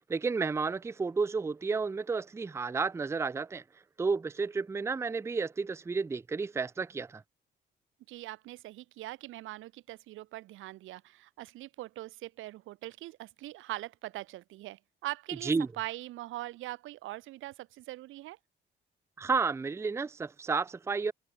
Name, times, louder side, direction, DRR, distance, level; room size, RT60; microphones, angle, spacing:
voice 1, 0.1-3.6 4.0-7.2 15.4-15.7 19.2-21.1, right 4 dB, 15° right, 0.4 m, -31 dB
voice 2, 8.1-18.4, right 16 dB, 85° right, 0.7 m, -42 dB
cardioid pair, 90°, 20 cm